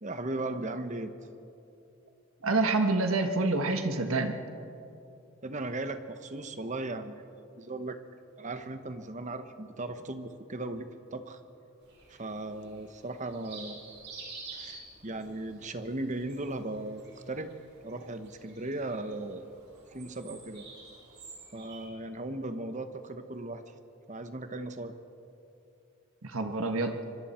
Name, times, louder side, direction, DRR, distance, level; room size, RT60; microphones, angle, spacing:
voice 1, 0.0-1.1 5.4-7.3 7.6-8.0 8.4-11.4 12.1-13.8 14.5-17.5 17.8-19.5 19.9-20.7 21.5-23.6 24.1-24.9, right 2 dB, 35° right, 9 dB, 1.1 m, -37 dB
voice 2, 2.4-4.4 26.2-27.0, right 3 dB, 80° right, 6 dB, 1.5 m, -27 dB
sound 1, 11.8-21.9, right 4 dB, 55° right, 5.8 m, -50 dB
25.0 x 23.5 x 4.4 m, 2.7 s
head